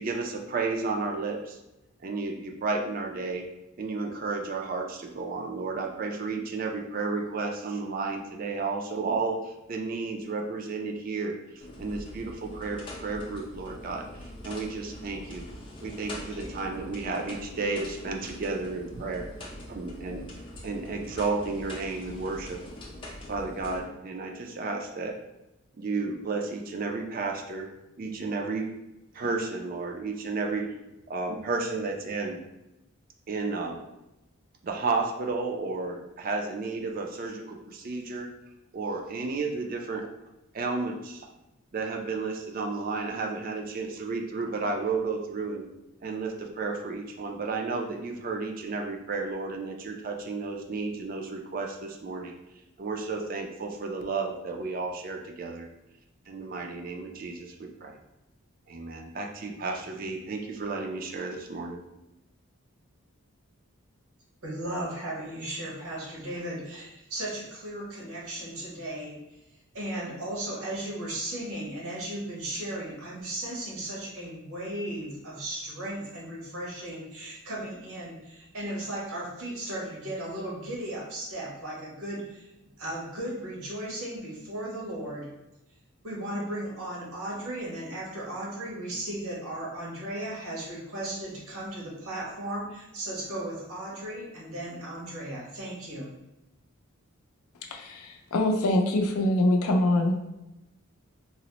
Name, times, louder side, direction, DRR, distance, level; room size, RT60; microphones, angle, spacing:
voice 1, 0.0-1.6 2.0-3.5 3.8-14.1 14.4-15.5 15.8-19.3 19.7-20.3 20.6-22.6 23.3-25.1 25.8-27.7 28.0-28.7 29.1-30.7 31.1-32.4 33.3-33.8 34.6-38.3 38.7-40.1 40.5-41.3 41.7-45.7 46.0-52.3 52.8-55.7 56.3-57.9 58.7-61.8, right 3 dB, 40° right, 2 dB, 0.3 m, -32 dB
sound 1, 11.6-23.8, left 1 dB, 25° left, 0.4 m, -43 dB
voice 2, 64.4-69.2 69.7-82.5 82.8-85.3 86.0-96.1, right 1 dB, 85° right, -4 dB, 1.1 m, -36 dB
voice 3, 97.6-100.2, left 1 dB, 85° left, 3 dB, 0.4 m, -24 dB
4.0 x 2.0 x 2.9 m, 0.92 s
head